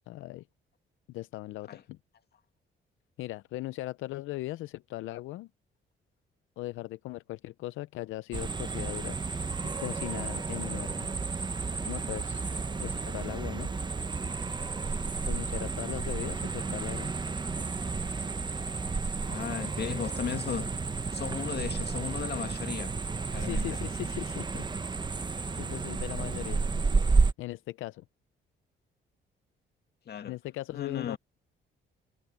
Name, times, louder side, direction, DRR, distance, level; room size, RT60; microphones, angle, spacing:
voice 1, 0.1-0.4 1.1-2.0 3.2-5.5 6.6-9.2 9.6-11.1 11.9-13.7 15.2-17.1 23.4-24.6 25.6-26.6 27.4-28.0 30.2-31.2, left 17 dB, 85° left, 0.6 m, -38 dB
sound 1, 8.3-27.3, right 4 dB, 20° right, 0.8 m, -31 dB
voice 2, 19.3-20.7 21.1-22.9 23.3-23.8 30.1-30.4 30.7-31.2, left 8 dB, 55° left, 2.0 m, -36 dB
cardioid pair, 90°, 20 cm